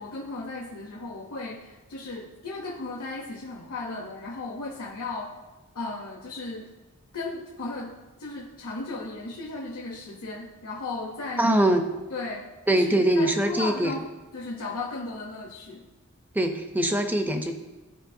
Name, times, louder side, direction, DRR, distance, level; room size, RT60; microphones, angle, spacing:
voice 1, 0.0-5.3 5.7-6.7 7.1-11.5 12.1-14.1 14.3-15.8, left 3 dB, 75° left, -3 dB, 0.9 m, -36 dB
voice 2, 11.4-11.8 12.7-13.9 16.3-17.5, right 1 dB, 10° right, 6 dB, 0.5 m, -22 dB
14.0 x 4.9 x 2.6 m, 1.2 s
head